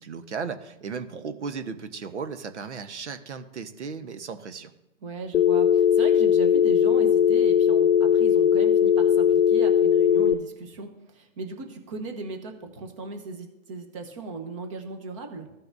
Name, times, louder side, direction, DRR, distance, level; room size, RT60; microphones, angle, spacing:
voice 1, 0.0-4.7, right 5 dB, 60° right, 9 dB, 1.1 m, -35 dB
voice 2, 5.0-15.5, right 3 dB, 25° right, 4 dB, 1.0 m, -37 dB
Telephone, 5.3-10.3, left 8 dB, 65° left, 0.5 m, -19 dB
15.0 x 5.7 x 2.7 m, 0.92 s
hypercardioid pair, 150°, 39 cm